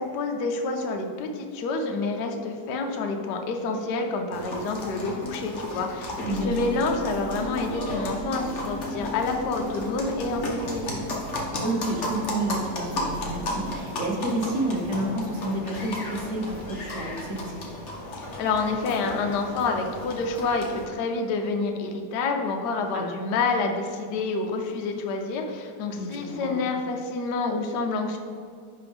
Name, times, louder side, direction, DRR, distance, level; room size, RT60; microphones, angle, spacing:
voice 1, 0.0-11.0 18.1-28.2, left 3 dB, 75° left, 3 dB, 1.2 m, -28 dB
sound 1, 4.3-20.9, left 1 dB, 50° left, 1.1 m, -35 dB
sound 2, 6.2-13.8, equal, 75° right, 0.6 m, -37 dB
voice 2, 6.3-6.6 11.6-17.7 22.9-23.1 25.9-26.6, right 1 dB, 50° right, 0 dB, 1.2 m, -30 dB
10.5 x 3.5 x 3.5 m, 2.2 s
omnidirectional pair, 1.9 m